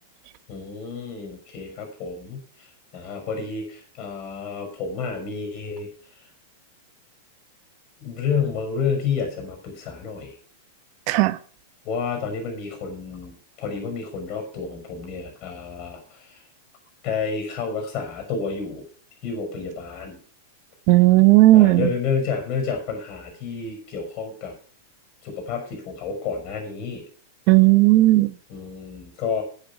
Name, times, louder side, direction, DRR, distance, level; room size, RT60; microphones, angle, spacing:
voice 1, 0.5-2.7 2.9-5.9 8.0-10.3 11.8-16.4 17.0-18.9 19.2-20.2 21.5-24.5 25.2-27.0 28.5-29.4, left 5 dB, 45° left, 3 dB, 5.6 m, -30 dB
voice 2, 11.1-11.4 20.9-21.9 27.5-28.3, right 18 dB, 50° right, 14 dB, 1.1 m, -14 dB
9.8 x 8.9 x 7.0 m, 0.43 s
hypercardioid pair, 105°, 0 cm